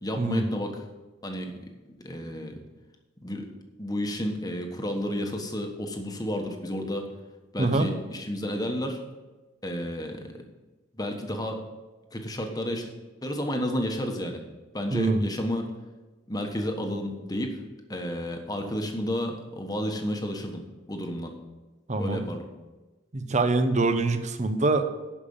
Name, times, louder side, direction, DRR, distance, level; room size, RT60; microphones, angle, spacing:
voice 1, 0.0-0.8 1.2-1.5 2.0-2.6 3.2-3.5 3.8-7.1 7.5-9.0 9.6-10.3 11.0-11.6 12.1-12.9 13.2-14.4 14.7-15.7 16.3-17.6 17.9-20.6 20.9-21.3 21.9-22.4, equal, 20° left, 3 dB, 1.2 m, -31 dB
voice 2, 14.9-15.2 21.9-22.3 23.1-24.9, right 2 dB, 35° right, 9 dB, 0.8 m, -24 dB
11.5 x 5.3 x 7.1 m, 1.2 s
head